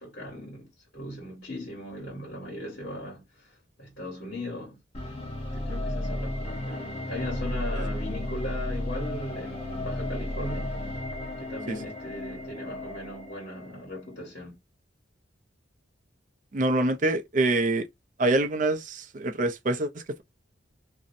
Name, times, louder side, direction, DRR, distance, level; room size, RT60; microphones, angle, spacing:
voice 1, 0.0-4.8 5.5-10.9 11.4-14.6, left 1 dB, 55° left, 1.3 m, -38 dB
sound 1, 4.9-14.0, left 1 dB, 30° left, 0.8 m, -33 dB
voice 2, 16.5-17.9 18.2-20.2, right 2 dB, 40° right, 0.4 m, -25 dB
2.6 x 2.0 x 2.5 m
head